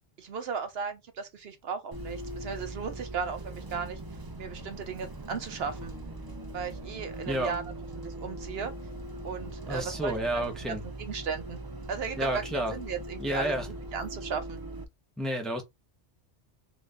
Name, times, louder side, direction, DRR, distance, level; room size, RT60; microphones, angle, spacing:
voice 1, 0.2-4.0 4.4-5.9 6.5-7.6 8.0-8.7 9.2-11.6 11.9-13.5 13.9-14.6, right 6 dB, 65° right, 0.9 m, -36 dB
Bus, 1.9-14.8, right 2 dB, 30° right, 0.4 m, -40 dB
voice 2, 9.7-10.8 12.2-12.7 13.2-13.7 15.2-15.6, right 1 dB, ahead, 0.8 m, -30 dB
3.8 x 2.6 x 3.4 m
omnidirectional pair, 1.1 m